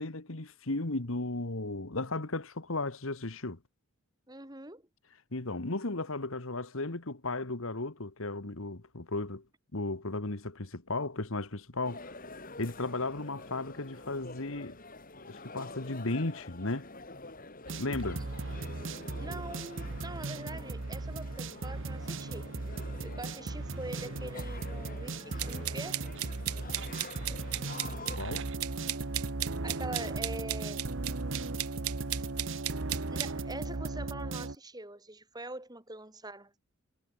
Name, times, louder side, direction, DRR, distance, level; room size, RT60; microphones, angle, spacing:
voice 1, 0.0-3.6 5.3-9.4 9.7-12.1 12.6-14.8 15.3-16.9 17.8-18.3 28.2-28.5, left 2 dB, 65° left, 1.7 m, -35 dB
voice 2, 4.3-4.9 19.2-22.5 23.0-26.1 29.6-30.8 33.1-36.5, right 2 dB, 15° right, 3.8 m, -43 dB
sound 1, 11.8-28.2, left 2 dB, 40° left, 4.6 m, -47 dB
sound 2, 17.7-34.6, right 3 dB, 55° right, 1.1 m, -37 dB
sound 3, 25.4-33.3, right 15 dB, 90° right, 1.5 m, -36 dB
head